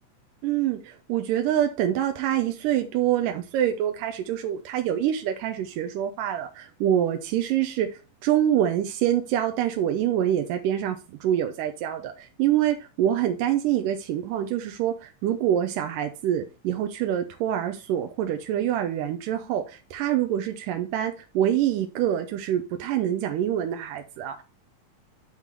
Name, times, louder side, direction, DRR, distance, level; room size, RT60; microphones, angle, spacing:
voice 1, 0.4-7.9 8.2-24.4, right 11 dB, 90° right, 2.3 m, -26 dB
9.1 x 3.7 x 4.6 m
omnidirectional pair, 3.9 m